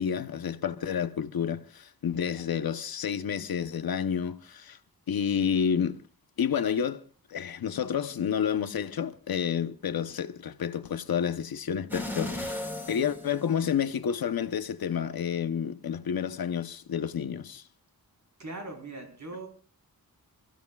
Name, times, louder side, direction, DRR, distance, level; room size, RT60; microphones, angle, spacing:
voice 1, 0.0-4.8 5.1-6.0 6.4-7.0 7.3-17.6, left 8 dB, 70° left, 1.0 m, -30 dB
sound 1, 11.9-14.0 14.5-14.6, left 1 dB, 5° right, 4.4 m, -36 dB
voice 2, 18.4-19.5, right 2 dB, 50° right, 4.6 m, -40 dB
29.0 x 15.5 x 2.4 m
wide cardioid pair, 130°, 37 cm